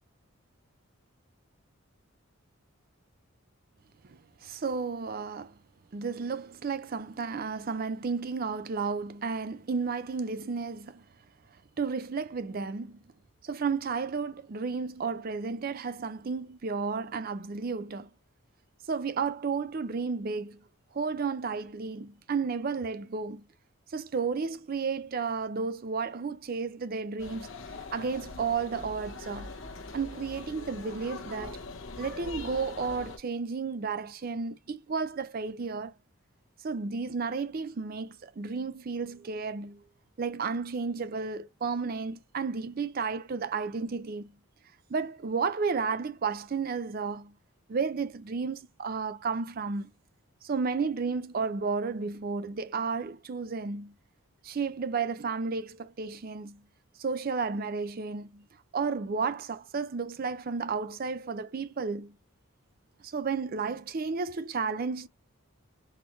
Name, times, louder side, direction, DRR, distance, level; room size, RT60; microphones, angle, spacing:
voice 1, 4.4-5.5 5.9-11.0 11.8-13.0 13.4-18.1 18.9-20.6 20.9-23.4 23.9-27.5 27.9-29.5 29.9-31.6 32.0-35.9 36.6-39.8 40.2-44.3 44.9-47.3 47.7-49.9 50.4-53.9 54.4-56.6 57.0-58.4 58.7-62.1 63.0-65.1, right 5 dB, 45° right, 0.4 m, -32 dB
sound 1, 27.2-33.2, left 3 dB, 65° left, 1.0 m, -42 dB
4.4 x 3.2 x 3.0 m
head